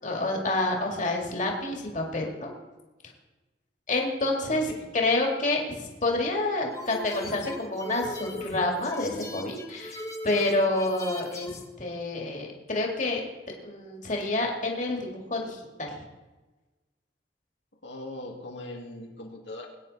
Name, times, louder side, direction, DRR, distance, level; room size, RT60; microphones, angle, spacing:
voice 1, 0.0-2.5 3.9-4.7 4.9-13.2 13.6-16.0, left 2 dB, 45° left, 0 dB, 2.2 m, -28 dB
voice 2, 4.3-4.9 17.8-19.7, left 1 dB, 90° left, 0 dB, 2.2 m, -40 dB
sound 1, 6.7-11.7, left 2 dB, 20° left, 1.3 m, -38 dB
21.0 x 9.3 x 4.2 m, 1.2 s
head